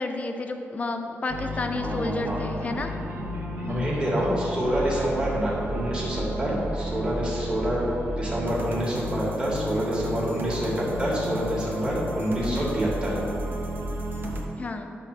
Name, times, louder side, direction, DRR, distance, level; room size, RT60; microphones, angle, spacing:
voice 1, 0.0-2.9 3.6-3.9 12.4-12.7 14.6-14.9, left 3 dB, 30° left, 5 dB, 0.6 m, -31 dB
sound 1, 1.3-14.4, equal, 45° right, 1.1 m, -32 dB
voice 2, 1.8-2.4 3.7-7.8 8.1-13.2, right 1 dB, 20° right, -5 dB, 1.8 m, -27 dB
10.5 x 3.7 x 6.5 m, 2.6 s
wide cardioid pair, 155°, 5 cm